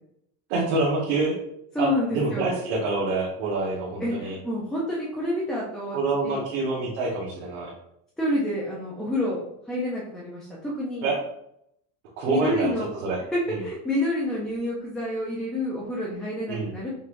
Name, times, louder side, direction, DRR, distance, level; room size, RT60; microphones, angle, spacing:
voice 1, 0.5-1.4 1.8-4.4 5.9-7.7 11.0-11.2 12.2-12.7 13.0-13.2 13.5-13.6 16.5-16.7, right 3 dB, 90° right, -4 dB, 1.2 m, -26 dB
voice 2, 1.7-2.5 4.0-6.0 6.2-6.4 8.2-9.4 9.7-11.1 12.3-12.9 13.3-16.9, left 1 dB, ahead, -6 dB, 0.4 m, -28 dB
5.4 x 3.2 x 2.5 m, 0.75 s
cardioid pair, 180°, 33 cm